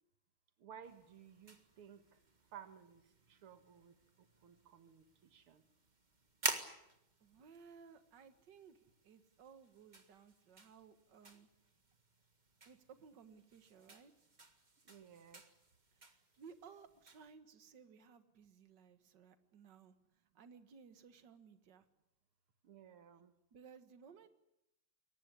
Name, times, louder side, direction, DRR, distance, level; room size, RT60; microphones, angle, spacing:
voice 1, 0.6-2.2 2.5-3.0 3.3-5.6 14.9-15.4 22.6-23.3, right 8 dB, 85° right, 10 dB, 2.5 m, -57 dB
sound 1, 0.8-17.3, right 3 dB, 20° right, 1.7 m, -50 dB
voice 2, 7.2-11.5 12.7-14.1 15.9-19.9 20.3-21.9 23.5-24.3, right 6 dB, 55° right, 10 dB, 2.1 m, -59 dB
22.5 x 19.0 x 10.0 m, 0.86 s
omnidirectional pair, 2.4 m